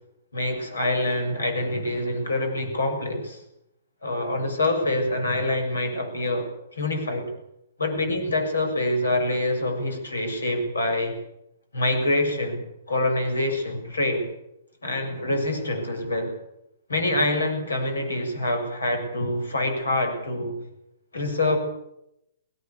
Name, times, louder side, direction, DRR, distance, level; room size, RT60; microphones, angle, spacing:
voice 1, 0.3-3.4 4.0-7.3 7.8-11.2 11.7-14.3 14.8-16.3 16.9-20.6 21.1-21.6, left 1 dB, 85° left, 5 dB, 7.2 m, -26 dB
20.0 x 18.0 x 8.4 m, 0.81 s
figure-of-eight pair, 125°, 0 cm